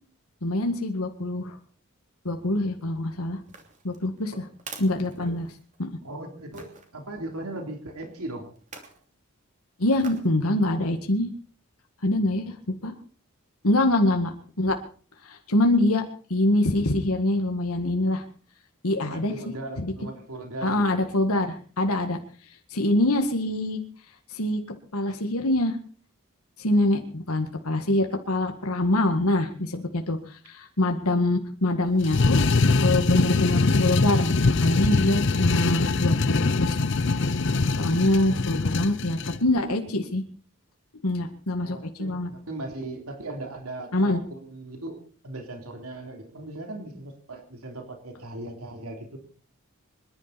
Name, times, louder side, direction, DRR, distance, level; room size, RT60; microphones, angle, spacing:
voice 1, 0.4-1.6 2.2-3.4 3.8-4.3 4.8-5.5 5.8-5.9 9.8-11.3 12.0-12.6 12.8-12.9 13.6-14.8 15.2-16.0 16.3-18.2 18.8-19.3 19.8-19.9 20.6-22.2 22.7-23.8 24.3-24.6 24.9-25.8 26.6-32.4 32.8-36.8 37.8-40.2 41.0-42.3 43.9-44.2, left 1 dB, 85° left, 5 dB, 1.9 m, -24 dB
sound 1, 3.4-5.9 6.5-6.9 8.6-9.0 10.0-10.4 10.8-10.9, right 4 dB, 35° right, 2.8 m, -45 dB
voice 2, 6.0-8.5 19.0-21.0 41.6-45.0 45.2-49.2, right 2 dB, 90° right, 3 dB, 3.4 m, -38 dB
sound 2, 32.0-39.4, left 3 dB, 55° left, 0.6 m, -23 dB
26.0 x 11.0 x 4.2 m, 0.42 s
head